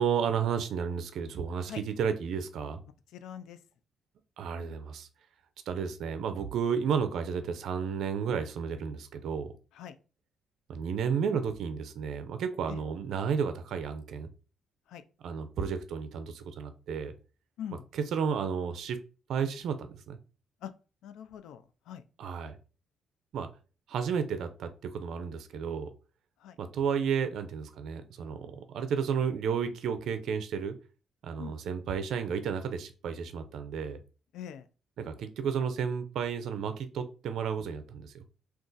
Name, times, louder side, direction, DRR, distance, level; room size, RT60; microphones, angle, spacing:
voice 1, 0.0-2.8 4.4-5.1 5.7-9.5 10.7-14.3 15.2-17.1 17.9-19.0 19.3-20.2 22.2-22.5 23.3-23.5 23.9-25.9 26.6-30.7 31.2-34.0 35.0-38.1, right 7 dB, 75° right, 9 dB, 0.4 m, -32 dB
voice 2, 3.1-3.6 9.8-9.9 12.7-12.8 14.9-15.0 17.6-17.8 20.6-20.7 21.0-22.0 26.4-26.6 31.4-31.6 34.3-34.6, left 9 dB, 85° left, 11 dB, 0.3 m, -42 dB
2.5 x 2.4 x 3.8 m, 0.34 s
cardioid pair, 90°, 0 cm